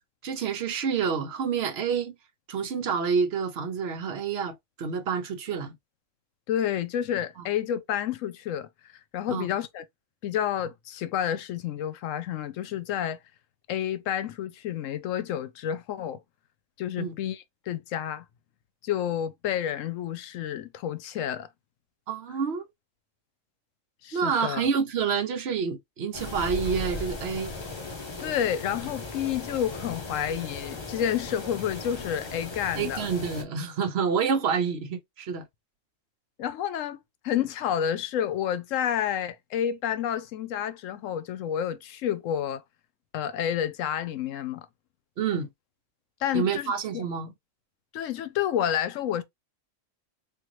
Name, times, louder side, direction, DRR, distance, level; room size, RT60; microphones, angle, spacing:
voice 1, 0.2-2.1 2.5-5.7 7.4-7.5 9.3-9.5 17.0-17.1 22.1-22.7 24.1-27.5 32.7-35.5 45.2-45.5 46.3-47.3, right 6 dB, 60° right, 0.8 m, -28 dB
voice 2, 6.5-8.7 9.1-9.8 10.2-13.2 13.7-16.2 16.8-18.3 18.8-21.5 24.0-24.7 28.2-33.1 36.4-42.6 43.1-44.6 46.2-47.0 47.9-49.2, left 10 dB, 85° left, 1.0 m, -30 dB
sound 1, 26.1-33.4, left 2 dB, 25° left, 0.7 m, -37 dB
3.6 x 2.6 x 3.0 m
omnidirectional pair, 1.3 m